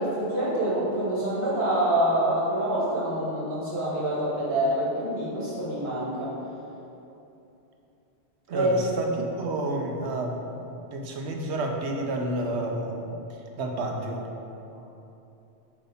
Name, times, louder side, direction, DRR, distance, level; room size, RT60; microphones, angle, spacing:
voice 1, 0.0-6.3 8.5-8.7, right 1 dB, 65° right, -7 dB, 2.0 m, -26 dB
voice 2, 8.5-13.2 13.6-14.3, right 2 dB, 80° right, 2 dB, 1.0 m, -30 dB
7.8 x 3.0 x 5.5 m, 2.9 s
omnidirectional pair, 1.1 m